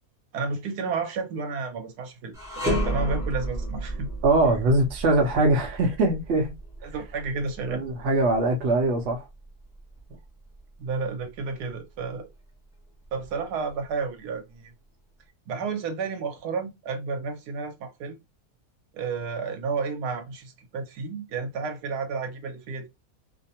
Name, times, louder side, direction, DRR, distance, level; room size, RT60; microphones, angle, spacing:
voice 1, 0.3-4.1 6.8-7.8 10.1-10.2 10.8-12.3 13.1-14.7 15.5-18.2 18.9-22.9, right 4 dB, 85° right, 1.3 m, -31 dB
sound 1, 2.3-11.6 12.0-12.2 13.0-13.9, equal, 5° right, 0.7 m, -33 dB
voice 2, 4.2-6.6 7.7-9.3, right 2 dB, 55° right, 0.9 m, -22 dB
2.8 x 2.1 x 2.7 m
omnidirectional pair, 1.6 m